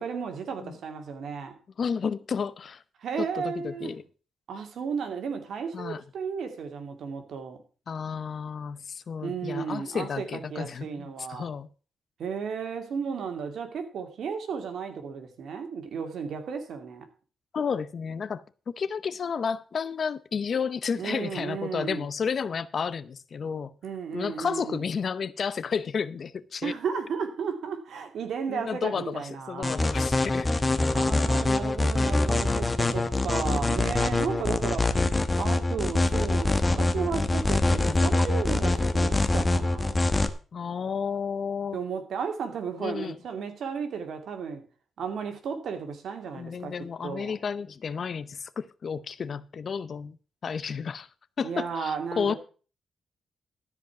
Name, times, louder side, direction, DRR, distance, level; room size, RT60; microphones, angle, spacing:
voice 1, 0.0-1.5 3.0-3.9 4.5-7.6 9.2-11.5 12.2-17.1 21.0-22.1 23.8-24.8 26.6-29.8 30.9-34.9 35.4-40.0 41.7-44.6 45.0-46.7 47.0-47.3 51.4-52.4, right 6 dB, 75° right, 2.4 m, -34 dB
voice 2, 1.8-2.8 3.2-4.0 5.7-6.0 7.9-11.7 17.5-18.4 18.8-23.7 24.1-26.7 28.5-30.5 37.7-38.0 40.5-41.8 42.8-43.2 46.3-50.2 50.4-51.1 51.4-52.3, left 6 dB, 55° left, 0.8 m, -32 dB
sound 1, 29.6-40.3, left 2 dB, 25° left, 1.2 m, -24 dB
13.0 x 5.2 x 7.1 m
cardioid pair, 75°, 0 cm